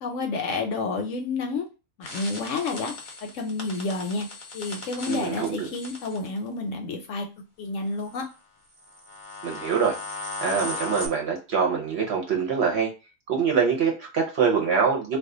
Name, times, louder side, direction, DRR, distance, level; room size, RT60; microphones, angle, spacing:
voice 1, 0.0-1.7 2.0-2.9 3.2-4.3 4.5-7.3 7.6-8.2, left 3 dB, 70° left, 4 dB, 0.8 m, -30 dB
sound 1, 2.0-6.4 8.1-8.2 8.8-11.1, left 2 dB, 50° left, 0.3 m, -37 dB
voice 2, 5.1-5.7 9.4-9.9 10.4-12.9 13.3-15.2, right 6 dB, 55° right, 0 dB, 0.8 m, -24 dB
2.3 x 2.3 x 3.6 m, 0.30 s
omnidirectional pair, 1.5 m